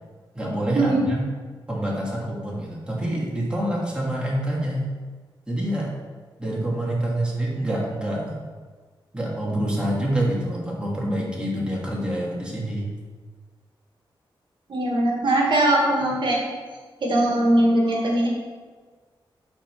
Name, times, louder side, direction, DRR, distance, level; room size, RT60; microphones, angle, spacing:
voice 1, 0.3-1.2 1.7-4.9 5.5-5.9 6.4-8.4 9.1-12.9, right 1 dB, 10° right, -5 dB, 2.6 m, -26 dB
voice 2, 14.7-16.4 17.0-18.3, right 1 dB, 65° right, -2 dB, 2.0 m, -20 dB
11.5 x 4.4 x 6.1 m, 1.4 s
wide cardioid pair, 100°, 9 cm